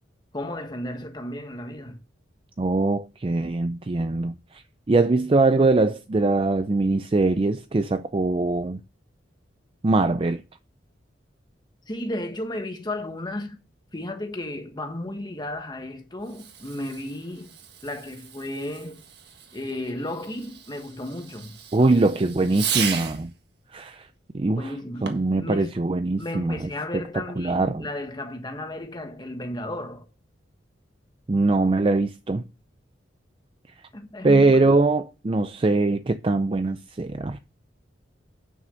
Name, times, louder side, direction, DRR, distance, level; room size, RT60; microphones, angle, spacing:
voice 1, 0.3-2.0 11.9-13.6 13.9-17.5 17.8-19.1 19.5-22.4 24.5-30.1 33.9-34.8, left 1 dB, 25° left, 1.4 m, -34 dB
voice 2, 2.6-8.8 9.8-10.4 21.7-23.3 23.7-24.1 24.3-24.7 25.0-26.7 27.4-27.9 31.3-32.4 34.2-37.4, right 3 dB, 30° right, 0.4 m, -22 dB
Fireworks, 16.2-23.3 24.9-25.4, right 7 dB, 60° right, 1.6 m, -35 dB
9.3 x 6.4 x 6.3 m
head